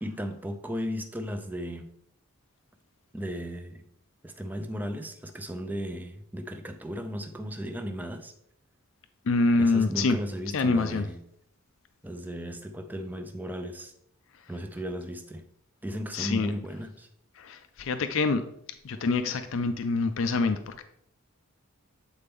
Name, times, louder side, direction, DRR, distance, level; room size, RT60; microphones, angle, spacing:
voice 1, 0.0-1.9 3.1-3.8 4.2-8.3 9.5-11.2 12.0-13.9 14.5-15.5 15.8-17.1, equal, 10° right, 0.4 m, -35 dB
voice 2, 9.2-10.2 10.5-11.1 16.1-16.5 17.4-18.4 18.8-20.8, left 3 dB, 60° left, 0.4 m, -26 dB
8.2 x 4.3 x 3.6 m
head